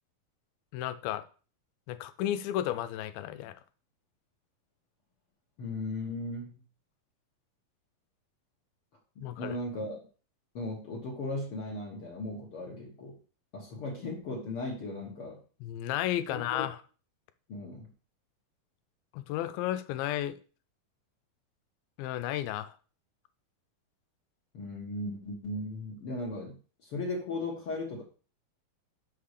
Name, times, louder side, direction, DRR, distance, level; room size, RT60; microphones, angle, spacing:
voice 1, 0.7-1.2 1.9-3.5 9.2-9.6 15.6-16.8 19.1-20.4 22.0-22.7, left 12 dB, 90° left, 11 dB, 2.5 m, -33 dB
voice 2, 5.6-6.6 9.2-10.1 10.5-13.2 13.5-15.4 16.3-16.7 17.5-17.9 24.5-28.0, left 2 dB, 55° left, -1 dB, 1.7 m, -37 dB
6.4 x 5.7 x 6.5 m, 0.37 s
omnidirectional pair, 4.2 m